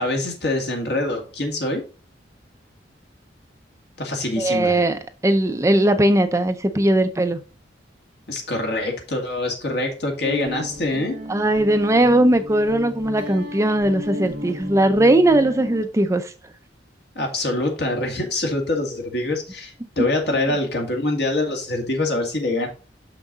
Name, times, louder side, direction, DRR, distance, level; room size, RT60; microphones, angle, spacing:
voice 1, 0.0-1.8 4.0-4.8 8.3-11.2 17.2-22.7, left 2 dB, 60° left, 2.2 m, -25 dB
voice 2, 4.4-7.4 11.3-16.3 20.0-20.1, right 1 dB, 15° right, 0.5 m, -19 dB
Guitar, 10.2-15.8, left 1 dB, 45° right, 1.7 m, -34 dB
6.4 x 6.0 x 3.9 m
head